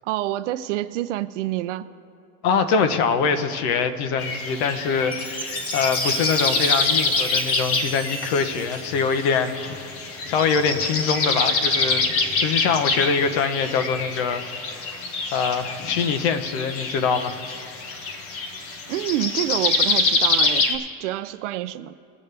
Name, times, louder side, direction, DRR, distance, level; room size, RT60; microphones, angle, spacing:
voice 1, 0.0-1.8 18.9-21.9, right 14 dB, 55° right, 13 dB, 0.5 m, -27 dB
voice 2, 2.4-9.6 10.3-14.9 15.3-17.4, left 5 dB, 45° left, 9 dB, 1.0 m, -24 dB
sound 1, 4.2-20.8, left 3 dB, 20° left, 0.3 m, -26 dB
Chime, 5.1-9.5, right 2 dB, 5° left, 0.9 m, -33 dB
22.0 x 8.2 x 3.4 m, 2.7 s
supercardioid pair, 165°, 44 cm